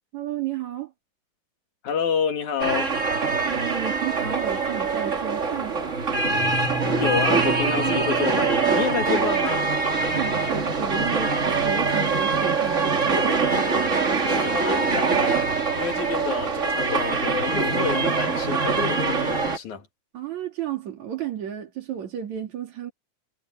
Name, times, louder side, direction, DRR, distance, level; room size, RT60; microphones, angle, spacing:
voice 1, 0.1-0.9 3.4-6.0 10.2-13.4 20.1-22.9, right 10 dB, 70° right, 3.6 m, -32 dB
voice 2, 1.8-3.0 7.0-9.6 14.2-19.9, left 6 dB, 80° left, 3.6 m, -29 dB
sound 1, 2.6-19.6, right 4 dB, 30° right, 1.8 m, -23 dB
Guitar, 6.3-8.9, equal, 5° left, 7.8 m, -34 dB
omnidirectional pair, 3.4 m